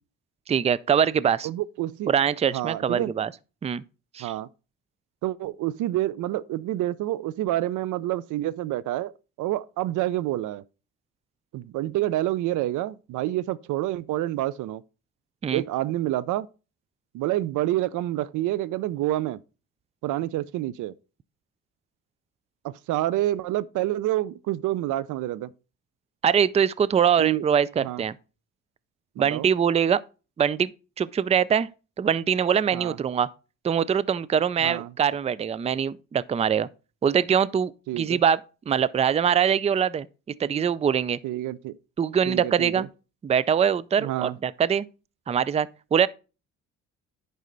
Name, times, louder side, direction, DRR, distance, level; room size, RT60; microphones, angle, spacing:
voice 1, 0.5-1.5 2.1-3.3 3.6-3.8 4.1-4.3 15.4-15.6 26.2-28.1 29.2-30.0 30.4-30.7 31.0-31.7 32.0-33.3 33.6-36.7 37.0-38.4 38.7-40.1 40.4-41.2 42.0-42.9 43.2-44.9 45.3-46.1, right 8 dB, 20° right, 0.4 m, -23 dB
voice 2, 1.4-2.1 2.5-3.1 4.2-4.5 5.2-9.1 9.4-10.6 11.5-14.8 15.5-16.5 17.1-19.4 20.0-20.9 22.6-25.5 27.2-27.4 27.8-28.0 29.2-29.5 32.7-33.0 34.6-34.9 37.9-38.2 41.2-41.8 42.3-42.9 44.0-44.4, right 15 dB, 80° right, 0.5 m, -28 dB
9.3 x 5.6 x 3.9 m
cardioid pair, 90°, 30 cm